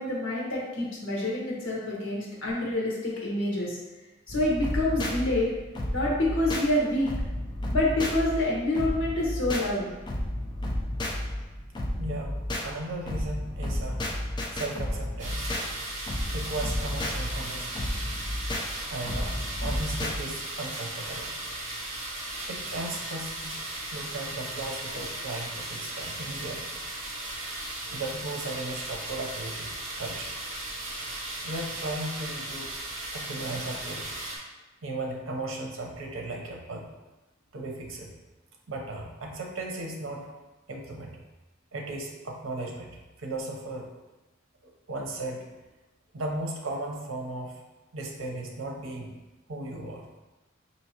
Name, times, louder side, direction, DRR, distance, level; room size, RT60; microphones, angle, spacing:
voice 1, 0.0-3.8 4.3-5.5 5.9-7.1 7.7-9.9, left 1 dB, 70° left, -4 dB, 1.1 m, -27 dB
sound 1, 4.3-20.2, left 1 dB, 20° left, 0.4 m, -32 dB
voice 2, 12.0-14.1 14.5-15.5 16.3-17.9 18.9-21.3 22.5-23.6 23.9-26.8 27.9-30.4 30.9-31.1 31.4-32.7 33.1-34.1 34.8-36.9 37.5-38.1 38.7-40.3 40.7-41.2 41.7-42.9 43.2-43.9 44.9-45.4 46.1-47.6 47.9-49.1 49.5-50.1, right 2 dB, 75° right, 1 dB, 0.7 m, -36 dB
sound 2, 15.2-34.4, right 1 dB, 35° right, 0.9 m, -37 dB
4.6 x 2.8 x 2.8 m, 1.1 s
head